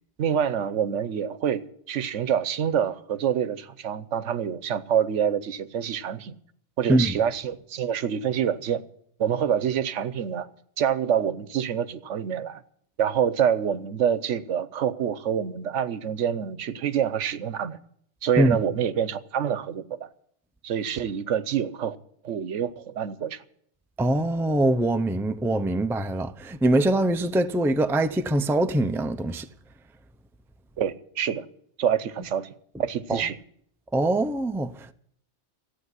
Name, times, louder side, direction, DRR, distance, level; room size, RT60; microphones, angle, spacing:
voice 1, 0.2-6.4 6.8-8.8 9.2-10.5 10.8-12.6 13.0-17.8 18.2-20.1 20.6-22.0 22.2-23.4 30.8-31.4 31.8-32.5 32.8-33.4, right 8 dB, 90° right, 1.1 m, -26 dB
voice 2, 24.0-29.5 33.1-33.2 33.9-34.9, right 1 dB, 5° right, 0.3 m, -23 dB
15.0 x 8.5 x 9.6 m
omnidirectional pair, 1.2 m